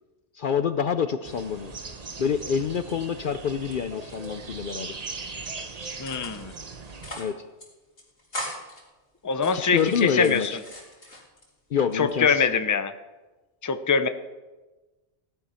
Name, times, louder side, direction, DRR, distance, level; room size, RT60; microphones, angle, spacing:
voice 1, 0.3-1.7 2.2-5.0 7.2-7.4 9.5-10.6 11.7-12.5, left 7 dB, 55° left, 11 dB, 0.7 m, -27 dB
sound 1, 1.2-7.2, right 4 dB, 40° right, 1.0 m, -39 dB
sound 2, 2.7-3.7 4.0-5.0 5.3-5.6 6.1-6.6 6.9-7.3 7.6-7.7 8.0-8.8 9.3-11.5 11.9-12.5, left 1 dB, 80° left, 3.8 m, -40 dB
voice 2, 6.0-6.5 9.2-10.5 11.9-12.9 13.6-14.1, left 5 dB, 20° left, 10 dB, 0.6 m, -23 dB
16.5 x 11.5 x 5.7 m, 1.2 s
omnidirectional pair, 1.1 m